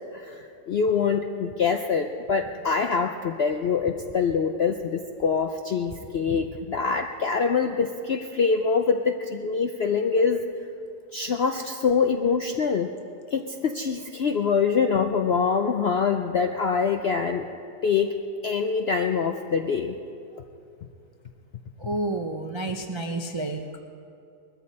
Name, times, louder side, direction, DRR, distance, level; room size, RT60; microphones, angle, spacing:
voice 1, 0.1-10.4 11.1-12.9 13.3-17.5 17.8-18.1 18.4-20.0, left 5 dB, 65° left, 5 dB, 0.6 m, -24 dB
voice 2, 21.8-23.8, right 2 dB, 40° right, 3 dB, 0.4 m, -30 dB
21.0 x 14.0 x 4.2 m, 2.5 s
omnidirectional pair, 1.8 m